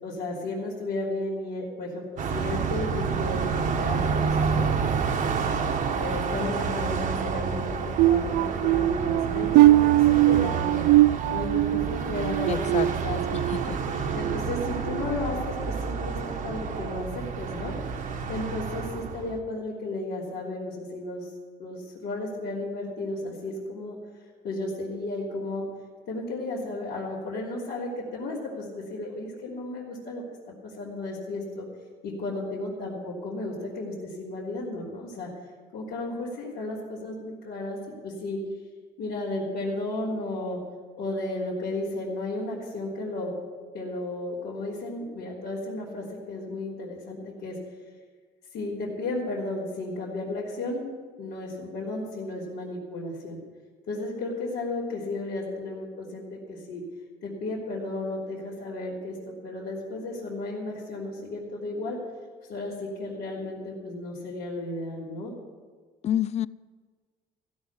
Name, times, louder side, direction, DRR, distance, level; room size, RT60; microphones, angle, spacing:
voice 1, 0.0-4.7 5.9-10.9 11.3-13.2 14.1-17.7 18.3-21.3 21.6-24.0 24.4-25.6 26.0-31.7 32.0-35.3 35.7-38.4 39.0-40.6 41.0-43.3 43.7-47.6 48.5-50.8 51.2-53.4 53.9-56.8 57.2-62.0 62.4-65.3, left 2 dB, 75° left, 3.3 m, -34 dB
Car passing by, 2.2-19.4, right 5 dB, 50° right, 1.3 m, -29 dB
sound 1, 8.0-13.6 14.1-14.4 14.9-15.1, right 15 dB, 85° right, 0.4 m, -21 dB
voice 2, 12.5-14.1 66.0-66.5, left 11 dB, 40° left, 0.4 m, -30 dB
15.5 x 6.3 x 9.7 m
cardioid pair, 110°, 17 cm